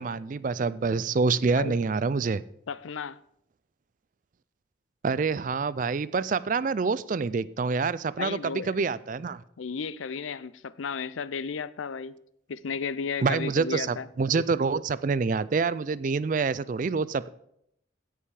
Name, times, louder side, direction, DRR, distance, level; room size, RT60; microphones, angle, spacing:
voice 1, 0.0-2.4 5.0-9.4 13.2-17.3, right 4 dB, 40° right, 0.3 m, -27 dB
voice 2, 2.7-3.2 8.2-8.7 9.6-12.2 12.5-14.1, left 5 dB, 90° left, 0.5 m, -33 dB
16.5 x 5.6 x 4.8 m
head